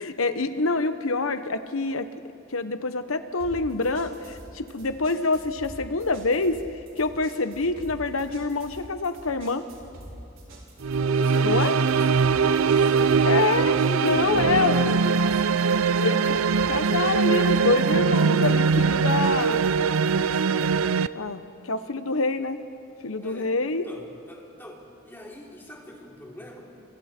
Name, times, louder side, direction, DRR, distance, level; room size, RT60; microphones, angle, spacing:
voice 1, 0.0-2.0 2.5-6.6 7.0-9.6 11.4-11.7 13.2-13.7 14.0-15.0 16.0-16.4 16.7-19.6 21.1-22.6 23.0-23.9, left 3 dB, 80° left, 10 dB, 1.1 m, -26 dB
sound 1, 3.4-20.8, right 1 dB, 70° right, 5.2 m, -45 dB
sound 2, 10.8-21.1, right 5 dB, 85° right, 0.5 m, -22 dB
voice 2, 11.0-13.4 13.7-15.5 23.2-26.7, equal, 10° left, -2 dB, 3.5 m, -39 dB
30.0 x 26.0 x 4.5 m, 2.8 s
head